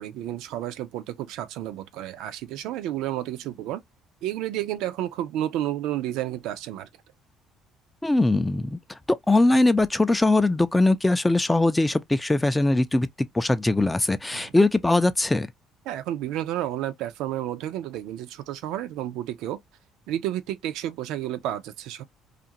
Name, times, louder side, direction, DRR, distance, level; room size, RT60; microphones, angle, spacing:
voice 1, 0.0-3.8 4.2-6.9 14.3-14.5 15.9-19.6 20.1-22.0, right 12 dB, 80° right, 0.5 m, -31 dB
voice 2, 8.0-13.1 13.3-15.5, left 2 dB, 10° left, 0.4 m, -21 dB
2.5 x 2.5 x 2.7 m
supercardioid pair, 80°, 0 cm